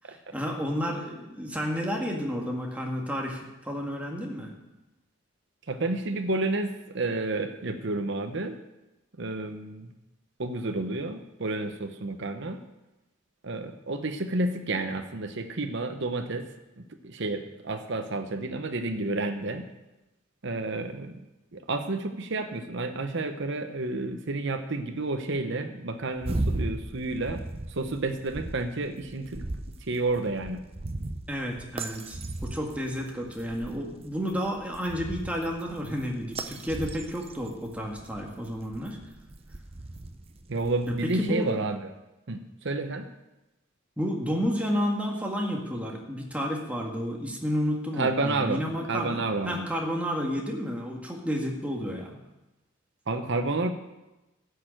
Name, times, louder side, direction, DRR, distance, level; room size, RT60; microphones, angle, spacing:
voice 1, 0.3-4.5 31.3-39.0 41.0-41.5 44.0-49.2 49.5-52.2, equal, 5° right, -1 dB, 1.9 m, -31 dB
voice 2, 5.7-8.6 9.2-9.9 10.4-12.6 13.4-16.5 16.8-19.6 20.4-21.2 21.5-27.4 27.7-29.4 29.9-30.6 40.5-41.9 42.3-43.1 48.0-48.6 48.9-49.7 53.1-53.7, right 2 dB, 60° right, 6 dB, 0.9 m, -30 dB
sound 1, 26.2-41.3, right 2 dB, 30° right, 0.7 m, -37 dB
12.5 x 6.7 x 8.9 m, 1.0 s
head